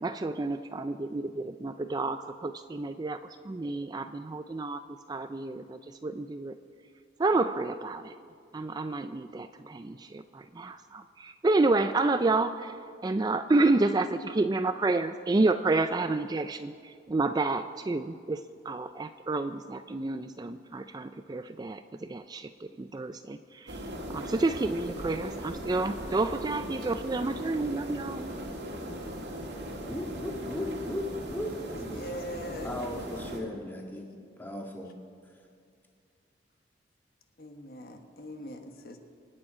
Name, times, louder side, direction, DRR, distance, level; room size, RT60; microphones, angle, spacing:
voice 1, 0.0-6.6 7.2-8.1 8.5-23.8 24.1-28.3, right 2 dB, 20° right, 10 dB, 0.3 m, -30 dB
sound 1, 23.7-33.4, equal, 70° right, 2.2 m, -38 dB
voice 2, 29.8-31.9 32.6-34.1 34.4-34.9, left 1 dB, 10° left, 0 dB, 1.8 m, -36 dB
voice 3, 31.6-32.7 37.4-39.0, equal, 55° left, 5 dB, 1.2 m, -42 dB
26.0 x 8.7 x 4.9 m, 2.2 s
head